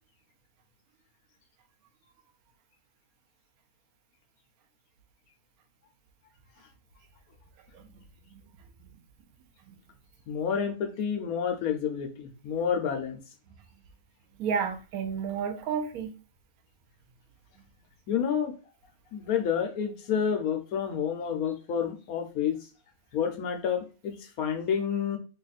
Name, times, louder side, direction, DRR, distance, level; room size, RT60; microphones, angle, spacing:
voice 1, 10.3-13.2 18.1-18.5 19.1-22.6 23.1-25.2, left 7 dB, 80° left, 1.2 m, -29 dB
voice 2, 14.4-16.1, right 7 dB, 80° right, 1.1 m, -31 dB
3.0 x 2.4 x 4.0 m
omnidirectional pair, 1.5 m